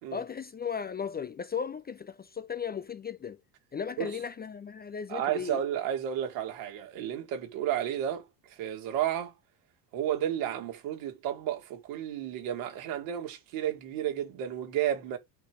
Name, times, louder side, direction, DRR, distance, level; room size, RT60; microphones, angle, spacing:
voice 1, 0.1-3.4 3.7-5.6, left 7 dB, 20° left, 0.4 m, -36 dB
voice 2, 5.1-9.3 9.9-15.2, right 10 dB, 75° right, 2.5 m, -32 dB
9.0 x 3.1 x 6.1 m
supercardioid pair, 85°, 47 cm